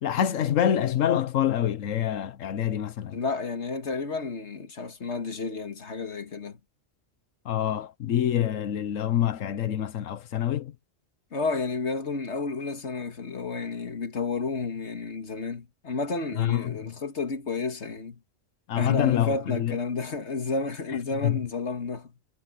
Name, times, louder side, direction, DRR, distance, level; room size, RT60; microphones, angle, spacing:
voice 1, 0.0-3.2 7.4-10.7 16.4-16.9 18.7-19.8 21.2-21.4, left 10 dB, 90° left, 1.2 m, -26 dB
voice 2, 3.1-6.6 11.3-18.2 18.7-22.1, left 4 dB, 60° left, 2.0 m, -31 dB
omnidirectional pair, 1.3 m